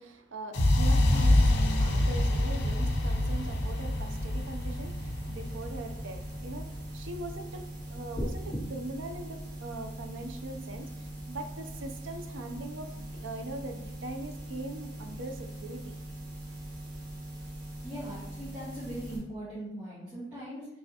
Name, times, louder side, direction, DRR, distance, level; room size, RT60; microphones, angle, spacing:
voice 1, 0.0-16.0, right 2 dB, 80° right, 0.6 m, -41 dB
sound 1, 0.5-8.5, left 1 dB, 60° left, 0.6 m, -27 dB
sound 2, 1.0-19.2, right 1 dB, 45° right, 1.5 m, -42 dB
sound 3, 8.1-8.6, equal, 20° left, 0.6 m, -33 dB
voice 2, 17.8-20.7, right 1 dB, 15° right, 1.5 m, -40 dB
5.4 x 3.4 x 2.8 m
head